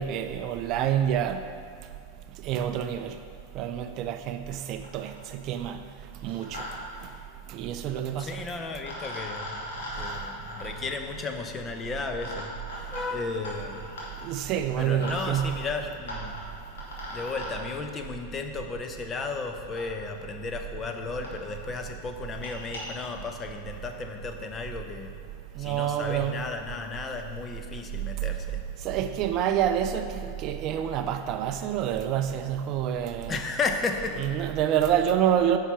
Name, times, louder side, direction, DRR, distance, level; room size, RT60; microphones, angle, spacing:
voice 1, 0.0-1.4 2.4-3.1 3.6-5.1 5.4-5.8 6.2-6.6 7.5-8.4 14.2-15.5 25.6-26.3 28.8-30.1 30.4-33.3 34.2-35.6, right 10 dB, 40° right, 8 dB, 0.4 m, -27 dB
sound 1, 4.5-4.6 4.8-5.3 6.1-6.7 6.9-7.0 8.3-8.4 8.8-17.5 18.8-18.9 19.8-19.9 20.5-20.6 20.8-20.9 21.2-21.3 21.6-21.8 22.2-22.8, left 1 dB, 60° left, 2.4 m, -40 dB
voice 2, 8.2-13.9 14.7-16.4 17.1-25.2 25.6-28.6 33.3-34.2, left 4 dB, 20° left, 5 dB, 0.8 m, -34 dB
9.8 x 5.7 x 6.1 m, 2.2 s
figure-of-eight pair, 90°, 0 cm